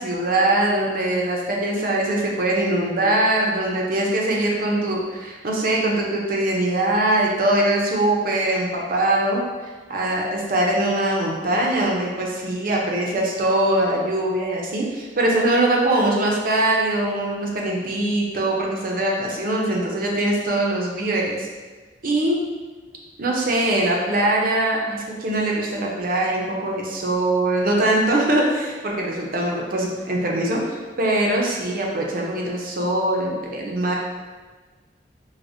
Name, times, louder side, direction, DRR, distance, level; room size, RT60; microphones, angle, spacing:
voice 1, 0.0-21.5 22.0-22.4 23.2-34.0, right 1 dB, 50° right, -2 dB, 0.6 m, -22 dB
4.8 x 2.1 x 2.6 m, 1.4 s
head